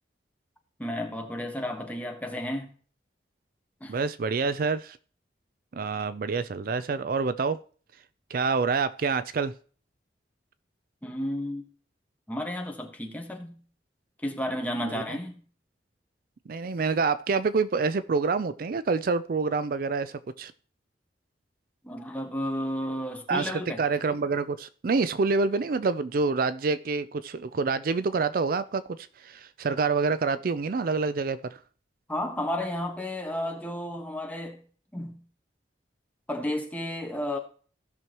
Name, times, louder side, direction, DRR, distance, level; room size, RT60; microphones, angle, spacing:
voice 1, 0.8-2.7 3.8-4.0 11.0-11.6 12.3-13.6 14.2-15.4 21.8-23.8 32.1-34.6 34.9-35.2 36.3-37.4, left 1 dB, 10° left, 1.3 m, -32 dB
voice 2, 3.9-5.0 5.7-7.6 8.3-9.5 14.8-15.2 16.5-20.5 23.3-31.6, right 4 dB, 55° right, 0.4 m, -27 dB
16.5 x 6.2 x 3.0 m
head